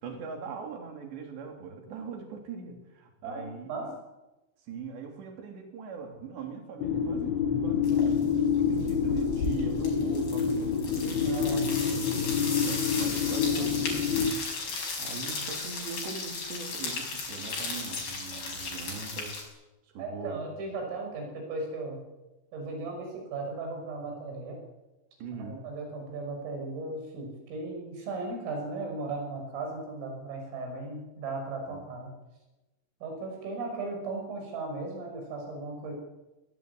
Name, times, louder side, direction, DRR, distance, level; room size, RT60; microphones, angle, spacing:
voice 1, 0.0-3.7 4.6-12.1 12.6-19.4 19.9-20.6 25.2-25.6 31.7-31.8, right 5 dB, 60° right, 3 dB, 5.2 m, -41 dB
voice 2, 3.2-3.9 11.2-11.7 13.5-13.7 20.0-22.0 22.5-24.6 25.4-32.1 33.0-35.9, right 3 dB, 85° right, 2 dB, 8.5 m, -36 dB
sound 1, 6.8-14.3, left 6 dB, 85° left, 4.2 m, -27 dB
sound 2, 7.8-8.2 8.5-19.4, left 3 dB, 50° left, 7.4 m, -36 dB
20.5 x 18.5 x 8.4 m, 1.0 s
omnidirectional pair, 5.7 m